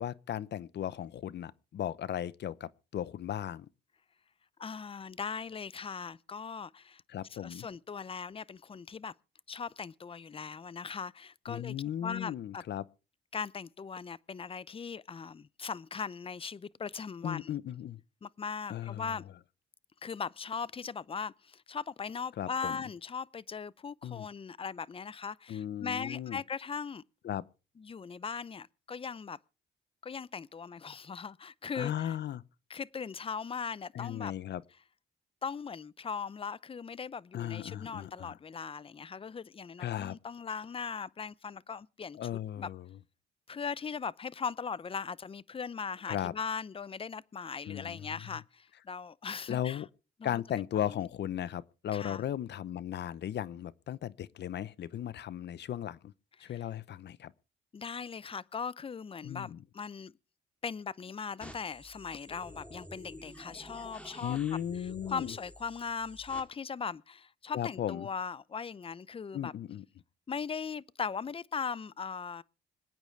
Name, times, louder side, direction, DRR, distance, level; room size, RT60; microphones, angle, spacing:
voice 1, 0.0-3.7 7.1-7.7 11.5-12.8 17.2-18.0 18.7-19.1 22.4-22.8 24.0-24.3 25.5-26.4 27.2-27.4 31.7-32.4 33.9-34.6 37.3-38.4 39.8-40.2 42.2-42.9 46.1-46.3 47.7-48.1 49.5-49.9 50.2-56.1 56.4-57.3 59.2-59.6 64.2-65.3 67.5-68.1 69.3-69.8, left 10 dB, 60° left, 0.8 m, -36 dB
voice 2, 4.6-7.0 7.3-9.1 9.5-11.8 12.0-12.6 13.3-17.5 18.2-19.2 20.0-27.0 27.8-29.4 30.0-32.1 32.7-34.3 35.4-42.7 43.5-49.8 50.2-50.3 50.6-51.0 51.9-52.2 56.4-56.6 57.7-60.1 60.6-64.4 65.1-69.5 70.3-72.4, left 6 dB, 30° left, 0.6 m, -39 dB
sound 1, 61.4-66.4, equal, 5° left, 3.2 m, -50 dB
26.0 x 9.0 x 3.4 m
cardioid pair, 90°, 20 cm